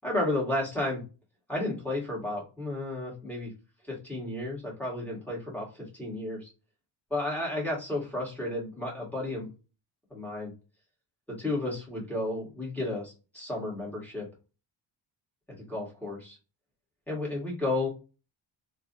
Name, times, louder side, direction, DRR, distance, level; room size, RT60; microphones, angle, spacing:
voice 1, 0.0-1.0 1.5-3.5 3.9-6.5 7.1-9.5 10.1-10.5 11.4-14.3 15.7-16.4 17.1-17.9, left 2 dB, 5° left, -5 dB, 1.8 m, -32 dB
3.2 x 2.5 x 2.6 m, 0.32 s
wide cardioid pair, 135°, 46 cm